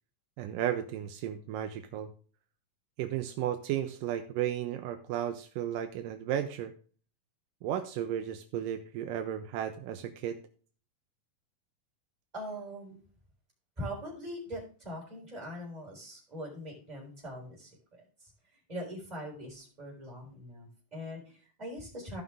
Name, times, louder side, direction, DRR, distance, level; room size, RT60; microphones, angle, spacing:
voice 1, 0.4-2.1 3.0-6.7 7.6-10.4, right 10 dB, 80° right, 7 dB, 2.2 m, -34 dB
voice 2, 12.3-13.0 13.8-18.3 18.7-22.2, equal, 10° right, -2 dB, 3.6 m, -42 dB
14.5 x 5.5 x 3.6 m, 0.41 s
omnidirectional pair, 4.0 m